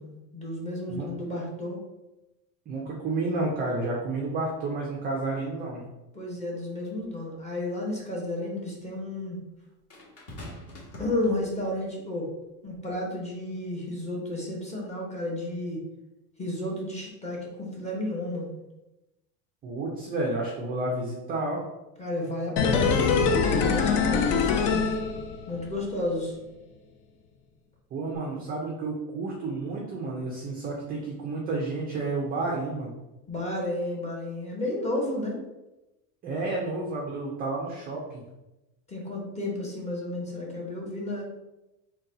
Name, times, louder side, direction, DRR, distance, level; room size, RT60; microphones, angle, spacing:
voice 1, 0.0-1.8 6.1-9.4 11.0-12.3 12.6-15.8 16.4-18.5 22.0-24.8 25.5-26.3 33.3-35.4 38.9-41.2, left 1 dB, 15° left, -3 dB, 0.9 m, -32 dB
voice 2, 2.7-5.8 19.6-21.6 27.9-32.9 36.2-38.2, right 2 dB, 20° right, -2 dB, 0.4 m, -31 dB
sound 1, 7.0-7.1 9.9-11.8 12.7-12.9, left 1 dB, 30° left, 1.1 m, -44 dB
sound 2, 22.6-25.7 26.0-26.1, left 5 dB, 50° left, 0.5 m, -23 dB
4.0 x 2.3 x 3.8 m, 0.99 s
supercardioid pair, 145°, 46 cm